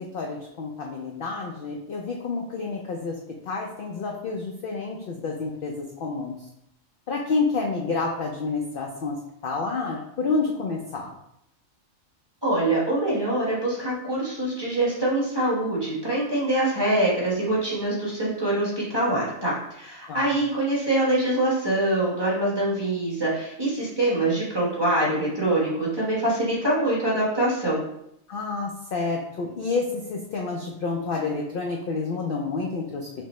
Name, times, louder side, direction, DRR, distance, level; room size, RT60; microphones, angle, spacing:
voice 1, 0.0-3.2 3.4-6.4 7.1-11.1 20.1-20.3 28.3-33.1, left 4 dB, 65° left, 0 dB, 0.5 m, -29 dB
voice 2, 12.4-27.8, right 1 dB, 20° right, -6 dB, 1.0 m, -24 dB
6.1 x 2.1 x 3.1 m, 0.77 s
omnidirectional pair, 1.4 m